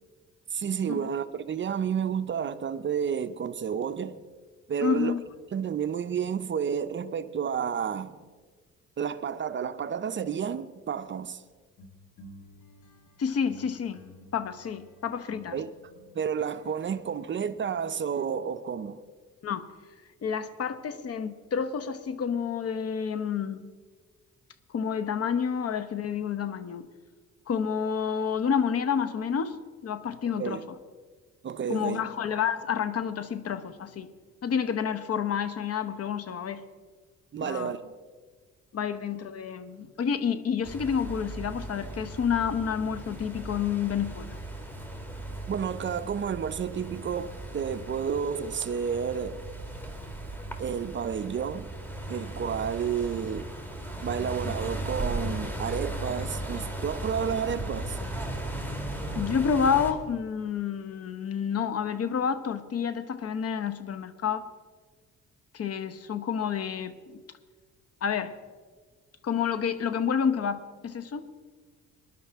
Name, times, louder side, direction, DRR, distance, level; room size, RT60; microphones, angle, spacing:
voice 1, 0.5-4.2 4.7-5.1 5.5-8.2 9.0-11.4 15.5-15.7 16.1-19.0 30.4-30.6 31.4-32.0 37.3-37.9 45.5-49.5 50.6-51.7 52.1-53.5 54.0-58.0, right 7 dB, 40° right, 0.6 m, -31 dB
voice 2, 4.8-5.2 13.2-14.0 14.3-15.5 19.4-19.6 20.2-23.6 24.7-26.9 27.5-29.6 29.8-30.6 31.7-34.1 34.4-36.6 37.4-37.7 38.7-44.4 54.2-54.5 59.1-64.5 65.5-67.2 68.0-68.3 69.2-71.3, left 7 dB, 55° left, 1.0 m, -29 dB
sound 1, 11.8-18.2, left 1 dB, 85° left, 1.5 m, -53 dB
sound 2, 40.6-59.9, right 1 dB, 5° left, 2.0 m, -37 dB
20.5 x 11.0 x 3.6 m
cardioid pair, 90°, 30 cm